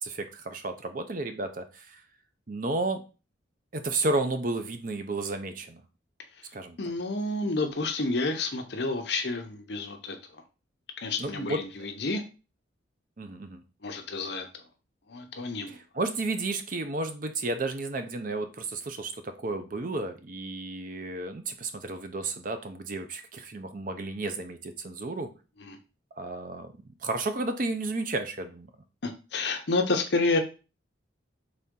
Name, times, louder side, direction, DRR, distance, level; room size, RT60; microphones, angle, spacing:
voice 1, 0.0-2.0 2.5-3.0 3.7-5.8 6.5-6.8 11.2-11.6 13.2-13.6 15.7-25.3 26.2-26.7 27.0-28.7, right 2 dB, 45° right, 8 dB, 0.5 m, -32 dB
voice 2, 6.8-10.2 11.0-12.2 13.8-14.5 15.1-15.8 25.6-25.8 29.0-30.4, left 3 dB, 60° left, 5 dB, 0.7 m, -29 dB
4.1 x 3.4 x 3.7 m, 0.32 s
head